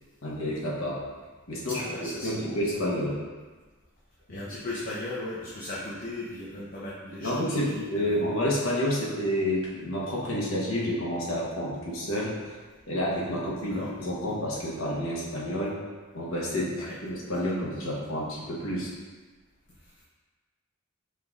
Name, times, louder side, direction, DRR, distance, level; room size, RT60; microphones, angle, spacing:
voice 1, 0.2-1.0 1.5-1.8 2.2-3.2 4.3-4.4 7.2-12.6 12.9-15.8 16.1-18.9, equal, 70° left, -5 dB, 1.1 m, -29 dB
voice 2, 1.7-2.6 4.3-8.3 13.7-13.9 16.8-17.0 19.8-20.0, left 1 dB, 40° left, -7 dB, 0.7 m, -37 dB
5.2 x 3.9 x 2.4 m, 1.4 s
head